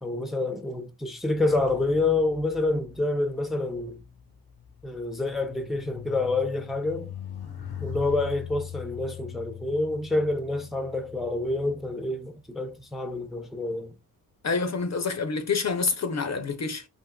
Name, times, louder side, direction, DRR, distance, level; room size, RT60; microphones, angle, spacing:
voice 1, 0.0-4.0 4.8-7.1 7.8-13.9, left 2 dB, ahead, 0.5 m, -28 dB
sound 1, 1.2-12.8 13.6-13.9, left 9 dB, 90° left, 0.7 m, -42 dB
voice 2, 14.4-16.9, left 4 dB, 45° left, 0.5 m, -27 dB
3.6 x 2.6 x 2.2 m
wide cardioid pair, 60°, 37 cm